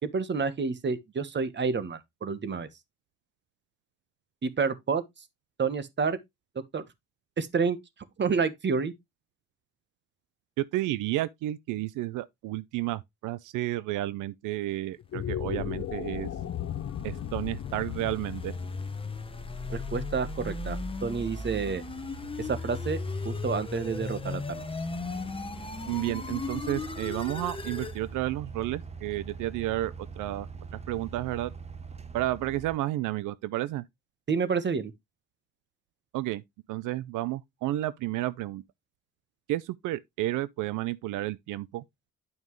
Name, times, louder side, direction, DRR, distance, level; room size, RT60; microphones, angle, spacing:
voice 1, 0.0-2.7 4.4-5.0 5.6-6.2 6.5-6.8 7.4-7.8 8.2-8.9 19.7-21.8 22.4-23.0 23.2-24.7 34.3-34.9, right 5 dB, 35° right, 1.2 m, -29 dB
voice 2, 10.6-16.3 17.0-18.6 25.9-30.5 30.7-31.5 32.1-33.8 36.1-36.4 36.7-38.6 39.5-41.8, right 16 dB, 85° right, 0.5 m, -31 dB
sound 1, 15.0-21.4, left 10 dB, 50° left, 0.7 m, -37 dB
sound 2, 15.8-28.0, left 3 dB, 20° left, 0.9 m, -37 dB
sound 3, 17.0-17.1 17.7-32.8, right 5 dB, 20° right, 0.8 m, -44 dB
9.6 x 5.3 x 3.1 m
cardioid pair, 90°, 30 cm